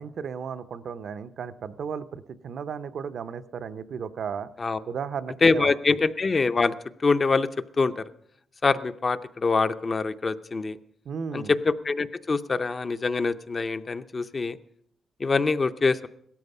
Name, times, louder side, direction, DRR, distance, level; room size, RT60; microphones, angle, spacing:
voice 1, 0.0-4.5 4.9-6.0 11.0-11.6, right 6 dB, 60° right, 11 dB, 0.6 m, -35 dB
voice 2, 5.4-6.7 7.0-7.5 7.8-8.0 8.6-10.8 11.3-14.6 15.2-16.1, left 4 dB, 30° left, 10 dB, 0.5 m, -24 dB
17.0 x 13.0 x 5.4 m, 0.70 s
wide cardioid pair, 150°, 0 cm